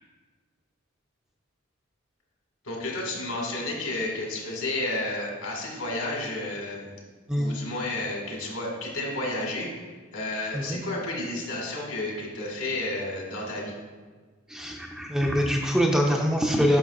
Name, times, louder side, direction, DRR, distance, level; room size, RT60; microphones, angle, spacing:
voice 1, 2.6-6.9 7.4-9.7 10.1-13.7, left 2 dB, 80° left, -2 dB, 1.9 m, -31 dB
voice 2, 14.5-16.8, equal, 5° right, 0 dB, 0.4 m, -24 dB
8.6 x 5.9 x 2.4 m, 1.5 s
head